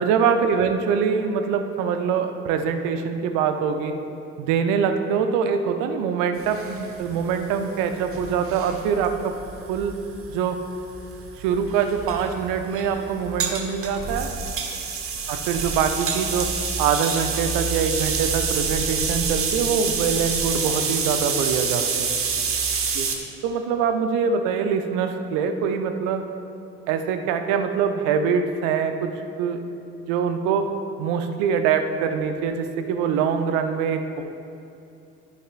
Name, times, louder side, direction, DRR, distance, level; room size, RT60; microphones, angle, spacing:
voice 1, 0.0-3.9 4.4-9.3 9.7-10.0 10.3-10.6 11.4-14.3 15.3-16.5 16.8-22.1 22.9-23.1 23.4-26.2 26.9-29.1 29.4-29.6 30.0-30.7 31.0-34.2, right 6 dB, 60° right, 7 dB, 0.7 m, -24 dB
sound 1, 6.4-23.2, right 5 dB, 40° right, 1.0 m, -28 dB
10.5 x 10.0 x 2.5 m, 2.7 s
figure-of-eight pair, 50°, 36 cm